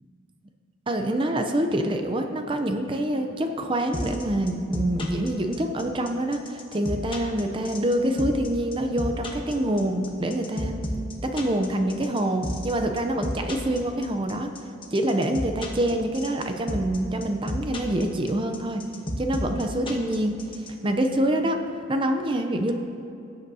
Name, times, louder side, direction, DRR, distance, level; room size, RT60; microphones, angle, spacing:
voice 1, 0.9-10.8 11.2-14.5 14.9-18.8 19.2-21.6 21.9-22.7, right 1 dB, 25° right, 5 dB, 0.5 m, -26 dB
sound 1, 3.9-20.7, left 1 dB, 25° left, 1.0 m, -32 dB
18.5 x 7.9 x 2.7 m, 2.9 s
head